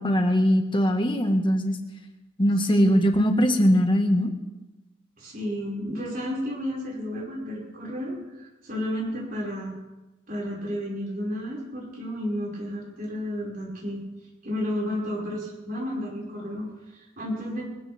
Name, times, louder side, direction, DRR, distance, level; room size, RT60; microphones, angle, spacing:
voice 1, 0.0-1.8 2.4-4.3, equal, 25° left, 4 dB, 1.7 m, -21 dB
voice 2, 2.7-3.2 5.2-9.7 10.3-14.0 14.4-17.7, equal, 50° right, -4 dB, 5.7 m, -32 dB
22.5 x 16.0 x 3.6 m, 1.1 s
head